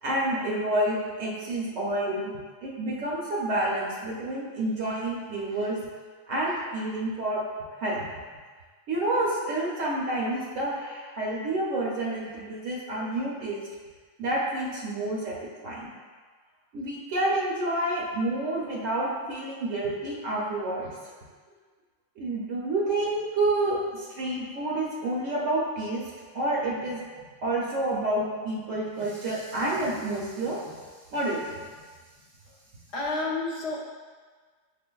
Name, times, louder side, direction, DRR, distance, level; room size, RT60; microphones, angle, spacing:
voice 1, 0.0-2.3 2.6-5.8 6.3-7.4 7.8-8.0 8.9-13.6 14.2-15.9 16.7-20.9 22.2-26.0 26.3-27.0 27.4-30.8 31.1-31.7, right 1 dB, 85° right, -4 dB, 1.0 m, -29 dB
voice 2, 32.9-33.8, left 3 dB, 65° left, -2 dB, 0.8 m, -29 dB
5.8 x 2.5 x 2.2 m, 1.5 s
omnidirectional pair, 1.3 m